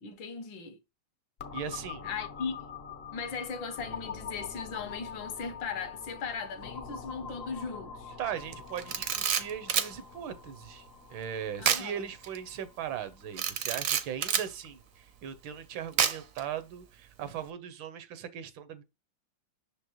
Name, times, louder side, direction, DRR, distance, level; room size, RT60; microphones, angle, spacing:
voice 1, 0.0-0.8 2.0-2.7 3.1-8.2 11.6-12.0, left 5 dB, 75° left, 1.6 m, -38 dB
sound 1, 1.4-15.0, left 6 dB, 60° left, 0.6 m, -45 dB
voice 2, 1.5-2.1 8.2-18.8, right 9 dB, 80° right, 1.6 m, -39 dB
Camera, 8.8-9.9 11.6-11.9 12.2-12.4 13.4-14.5 16.0-16.4, right 8 dB, 65° right, 0.8 m, -28 dB
6.1 x 5.1 x 3.0 m
omnidirectional pair, 2.1 m